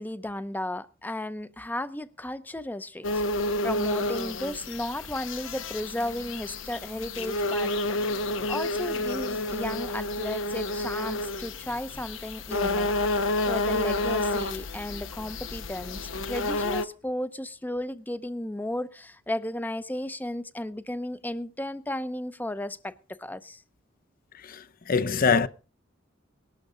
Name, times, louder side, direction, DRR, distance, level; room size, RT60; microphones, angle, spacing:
voice 1, 0.0-7.7 8.5-23.6, left 1 dB, 10° left, 0.6 m, -34 dB
sound 1, 3.0-16.8, left 2 dB, 80° left, 1.0 m, -30 dB
voice 2, 24.4-25.5, left 5 dB, 45° left, 0.7 m, -24 dB
19.5 x 11.5 x 3.8 m
head